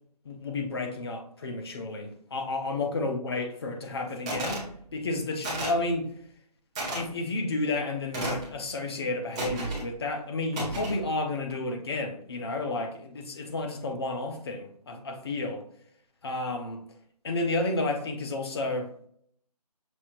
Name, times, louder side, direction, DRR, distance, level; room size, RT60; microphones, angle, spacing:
voice 1, 0.2-6.1 6.9-15.6 16.2-16.8 17.2-18.9, left 2 dB, 40° left, 4 dB, 0.7 m, -31 dB
sound 1, 4.3-4.7 5.4-5.8 6.7-7.0 8.1-8.5 9.3-9.9 10.5-11.0, right 2 dB, 10° right, 0.5 m, -32 dB
6.1 x 2.8 x 2.5 m, 0.63 s
figure-of-eight pair, 160°, 21 cm